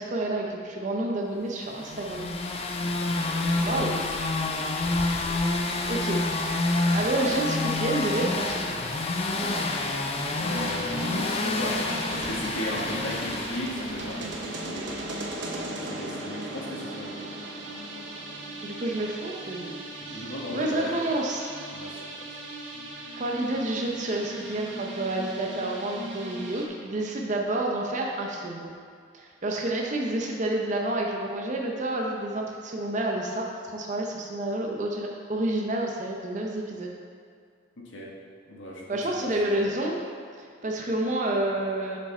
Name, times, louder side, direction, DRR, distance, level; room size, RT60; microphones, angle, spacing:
voice 1, 0.0-2.3 3.5-4.1 5.7-6.2 6.7-8.8 9.3-9.7 18.6-19.7 20.1-20.2 20.5-21.5 23.2-28.7 29.1-36.9 38.9-39.9 40.4-42.0, right 1 dB, 40° right, -1 dB, 0.6 m, -29 dB
sound 1, 1.7-14.6, left 2 dB, 30° left, 0.4 m, -28 dB
voice 2, 2.7-4.0 10.3-11.8 12.1-15.0 15.8-17.1 20.0-20.9 21.7-22.3 37.8-38.1 38.5-39.6, left 1 dB, 80° left, -3 dB, 1.3 m, -36 dB
sound 2, 10.5-26.7, right 1 dB, 70° right, 0.8 m, -37 dB
7.0 x 4.7 x 4.3 m, 2.2 s
head